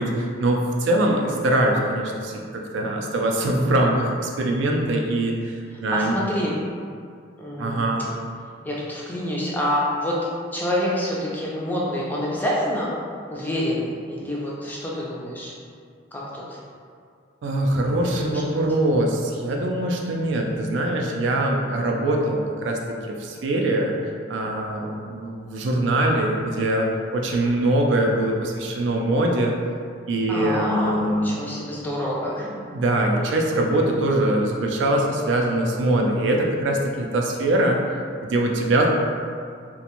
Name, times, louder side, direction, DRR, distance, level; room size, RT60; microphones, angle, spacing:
voice 1, 0.0-6.1 7.6-8.1 17.4-22.8 23.1-23.9 24.3-26.9 27.1-29.5 30.1-31.3 32.2-37.8 38.2-38.9, right 1 dB, 75° right, 0 dB, 0.3 m, -23 dB
voice 2, 5.9-6.5 7.4-7.9 8.6-10.2 10.5-12.9 13.3-15.5 16.1-16.6 18.3-18.4 30.3-32.5, equal, 10° left, -5 dB, 0.3 m, -27 dB
2.5 x 2.1 x 2.9 m, 2.2 s
head